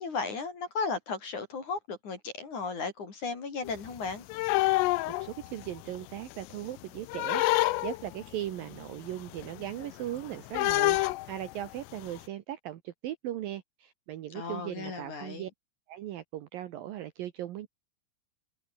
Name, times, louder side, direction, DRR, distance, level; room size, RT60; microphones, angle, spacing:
voice 1, 0.0-4.3 14.3-15.5, left 4 dB, 40° left, 4.7 m, -35 dB
sound 1, 3.6-6.0 6.3-8.3 8.7-8.8 9.1-12.2, left 20 dB, 90° left, 3.5 m, -28 dB
voice 2, 5.1-15.5 15.9-17.7, right 12 dB, 85° right, 2.0 m, -38 dB
omnidirectional pair, 5.7 m